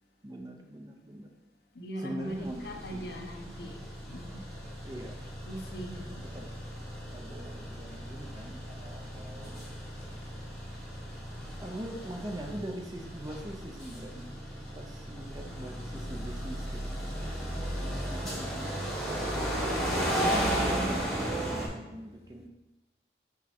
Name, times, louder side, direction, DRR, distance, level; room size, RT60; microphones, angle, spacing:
voice 1, 0.2-1.3 2.0-3.1 4.9-5.1 6.1-6.5 7.1-9.7 11.6-14.5 14.7-17.1 17.7-22.5, right 1 dB, 20° right, 0.6 m, -42 dB
voice 2, 1.7-3.8 4.1-4.4 5.5-6.2, right 1 dB, 60° left, 0.8 m, -40 dB
sound 1, 2.2-21.7, equal, 5° left, 1.5 m, -35 dB
6.2 x 4.4 x 4.3 m
head